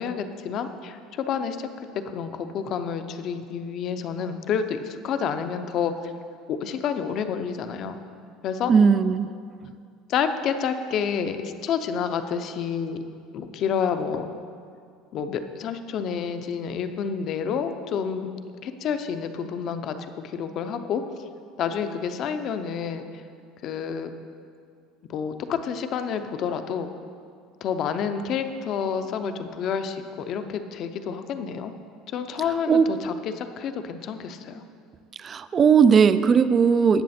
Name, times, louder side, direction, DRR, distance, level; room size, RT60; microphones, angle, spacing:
voice 1, 0.0-5.9 6.5-8.0 8.4-8.7 10.1-13.0 13.3-14.2 15.1-18.3 18.6-21.0 21.6-23.0 23.6-24.1 25.1-26.9 27.6-31.7 32.1-34.6, left 7 dB, 45° left, 9 dB, 0.7 m, -29 dB
voice 2, 8.7-9.3 32.7-32.9 35.2-37.0, right 6 dB, 25° right, 13 dB, 0.4 m, -18 dB
18.5 x 7.3 x 4.3 m, 2.3 s
cardioid pair, 155°, 0 cm